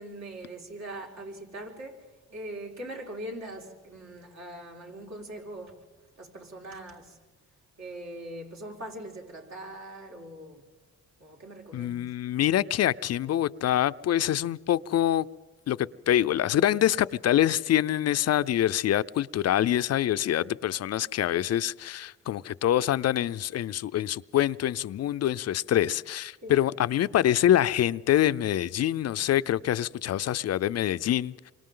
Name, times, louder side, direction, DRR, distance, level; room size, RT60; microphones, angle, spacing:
voice 1, 0.0-5.8 6.2-7.2 7.8-10.6 11.2-11.9 26.4-26.5, right 1 dB, 65° right, 5.2 m, -41 dB
voice 2, 11.7-15.3 15.7-31.5, left 12 dB, 55° left, 0.5 m, -25 dB
28.5 x 24.5 x 3.8 m
cardioid pair, 90°, 30 cm